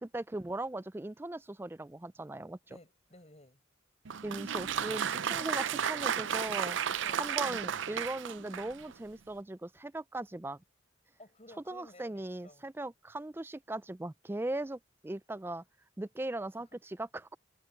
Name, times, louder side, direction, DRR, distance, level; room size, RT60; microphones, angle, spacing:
voice 1, 0.0-2.6 4.2-6.8 7.2-10.6 11.7-15.6 16.0-17.4, right 2 dB, 10° right, 0.3 m, -39 dB
voice 2, 2.6-3.6 5.6-6.0 7.0-7.3 11.2-12.7, left 1 dB, 35° left, 6.8 m, -56 dB
Applause, 4.0-8.9, right 8 dB, 70° right, 0.5 m, -33 dB
head